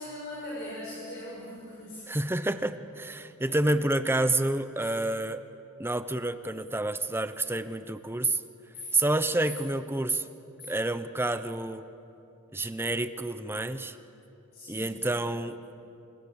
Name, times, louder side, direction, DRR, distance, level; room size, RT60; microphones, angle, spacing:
voice 1, 0.0-2.1 3.4-3.6 4.8-4.9 8.7-8.9 14.5-14.9, left 1 dB, 50° left, -6 dB, 6.6 m, -40 dB
voice 2, 2.1-5.4 5.8-8.4 8.9-10.3 10.7-11.8 12.5-14.0 14.7-15.6, right 2 dB, 10° right, 11 dB, 0.9 m, -29 dB
29.0 x 26.5 x 7.2 m, 2.7 s
head